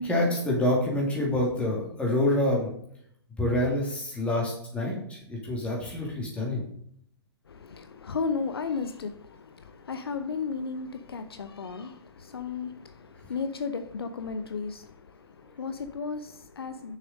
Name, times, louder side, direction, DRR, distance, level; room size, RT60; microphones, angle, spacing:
voice 1, 0.0-2.7 3.4-6.6, left 1 dB, 10° left, 2.7 m, -27 dB
voice 2, 7.5-17.0, left 5 dB, 65° left, 0.7 m, -34 dB
6.5 x 6.4 x 5.2 m
figure-of-eight pair, 110°, 14 cm